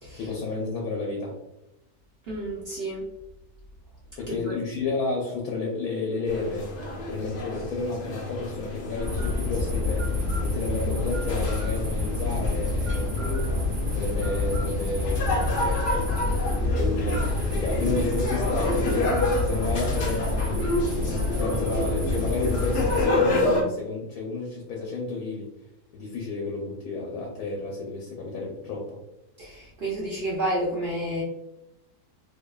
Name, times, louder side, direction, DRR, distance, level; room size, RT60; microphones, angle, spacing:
voice 1, 0.1-1.4 4.2-6.7 7.1-10.1 10.4-13.3 13.9-16.1 16.7-19.1 19.4-25.5 25.9-29.0, left 3 dB, 85° left, -2 dB, 1.1 m, -31 dB
voice 2, 2.3-3.1 4.3-4.6 29.4-31.2, right 1 dB, 65° right, -5 dB, 0.6 m, -30 dB
sound 1, 6.3-23.6, left 2 dB, 65° left, 0.7 m, -30 dB
sound 2, 9.0-23.0, left 2 dB, 40° right, 0.9 m, -27 dB
2.6 x 2.1 x 2.2 m, 0.86 s
omnidirectional pair, 1.6 m